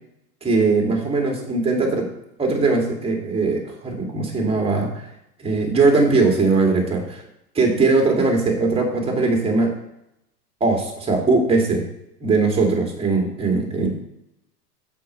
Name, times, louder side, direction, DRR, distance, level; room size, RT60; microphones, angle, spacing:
voice 1, 0.4-2.1 2.4-5.0 5.4-7.2 7.5-9.7 10.6-11.8 12.2-13.9, right 3 dB, 10° right, 1 dB, 2.3 m, -20 dB
6.8 x 5.9 x 6.3 m, 0.83 s
hypercardioid pair, 120°, 47 cm